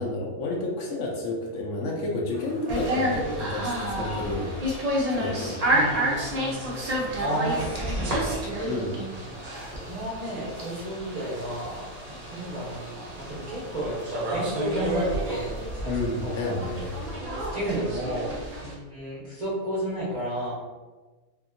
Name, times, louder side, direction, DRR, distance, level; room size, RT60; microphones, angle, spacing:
voice 1, 0.0-4.6 5.1-6.0 7.0-7.2 8.6-9.0 15.9-16.9, left 2 dB, 70° left, -1 dB, 0.9 m, -31 dB
sound 1, 2.3-17.2, equal, ahead, 0.5 m, -47 dB
sound 2, 2.7-18.7, right 1 dB, 80° right, 0.3 m, -30 dB
voice 2, 5.7-6.8 7.2-8.7 9.7-11.9 12.2-16.5 17.5-18.3 18.6-20.5, right 1 dB, 35° right, -10 dB, 0.7 m, -32 dB
2.7 x 2.6 x 2.5 m, 1.3 s
omnidirectional pair, 1.5 m